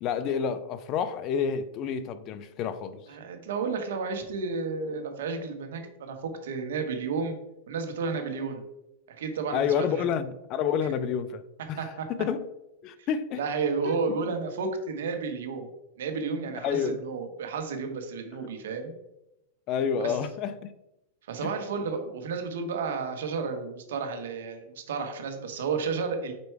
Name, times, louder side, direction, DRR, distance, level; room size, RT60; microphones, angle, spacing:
voice 1, 0.0-3.0 9.5-11.4 11.7-11.9 12.2-12.4 12.8-13.4 13.9-14.0 16.6-17.0 19.7-20.7, left 7 dB, 35° left, 0.4 m, -29 dB
voice 2, 3.1-7.4 7.7-8.6 9.2-10.0 11.8-12.1 13.0-13.1 13.3-15.7 16.0-18.9 20.0-20.2 21.3-26.3, right 4 dB, 80° right, 1.3 m, -32 dB
5.2 x 4.5 x 4.6 m
supercardioid pair, 150°, 0 cm